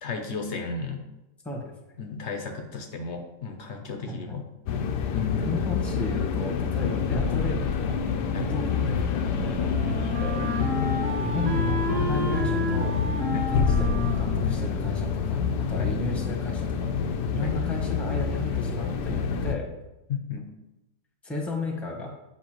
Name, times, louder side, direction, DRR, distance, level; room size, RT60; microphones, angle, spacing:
voice 1, 0.0-1.0 2.0-4.5 5.1-5.5 6.8-6.9 8.3-8.5 10.6-10.9 13.3-13.5 15.8-15.9 17.4-17.6 20.1-20.5, left 5 dB, 55° left, 5 dB, 0.8 m, -33 dB
voice 2, 4.1-4.4 5.4-8.0 8.4-10.4 11.2-12.9 13.5-16.9 17.3-19.7 21.2-22.1, left 1 dB, ahead, 0 dB, 0.9 m, -34 dB
sound 1, 4.7-19.5, left 6 dB, 90° left, 1.2 m, -27 dB
Wind instrument woodwind instrument, 8.8-15.6, equal, 75° right, 1.7 m, -33 dB
8.6 x 5.7 x 3.0 m, 0.95 s
omnidirectional pair, 1.7 m